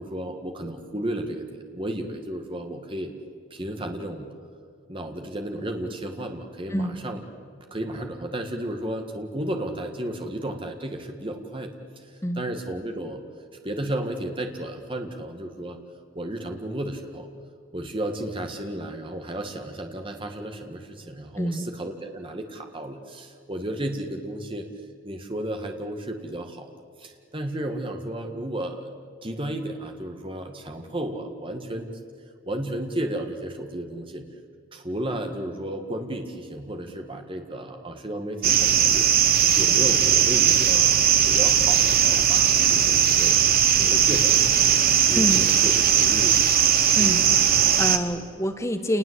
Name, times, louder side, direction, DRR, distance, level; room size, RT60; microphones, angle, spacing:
voice 1, 0.0-3.1 3.5-4.3 4.9-7.2 7.5-11.7 12.4-13.2 13.6-15.8 16.1-17.3 17.7-24.7 25.0-26.7 27.0-28.9 29.2-31.9 32.5-34.3 34.7-39.1 39.6-43.4 43.8-44.6 45.1-46.5, right 1 dB, 25° right, 4 dB, 1.8 m, -33 dB
sound 1, 38.4-48.0, right 9 dB, 45° right, 1.2 m, -19 dB
voice 2, 45.1-45.4 46.9-49.0, equal, 15° left, 7 dB, 1.3 m, -27 dB
29.0 x 20.0 x 8.2 m, 2.1 s
head